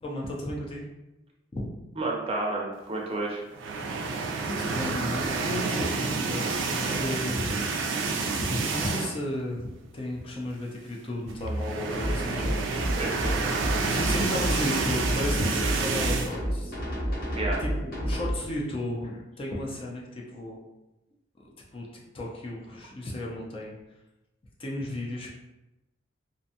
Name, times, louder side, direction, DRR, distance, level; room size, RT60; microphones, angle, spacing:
voice 1, 0.0-0.8 1.5-1.7 4.5-7.6 8.4-12.6 13.8-16.7 17.6-20.0 20.3-20.6 21.7-23.8 24.6-25.3, left 1 dB, 30° left, -3 dB, 0.4 m, -33 dB
voice 2, 2.0-3.4 13.0-13.4 17.3-17.6, right 2 dB, 30° right, -2 dB, 0.5 m, -30 dB
sound 1, 3.5-9.3 9.7-9.9 10.1-10.2 11.3-16.3, right 4 dB, 85° right, 0.3 m, -29 dB
sound 2, 11.9-18.3, equal, 50° left, 0.8 m, -30 dB
2.5 x 2.2 x 2.7 m, 0.97 s
head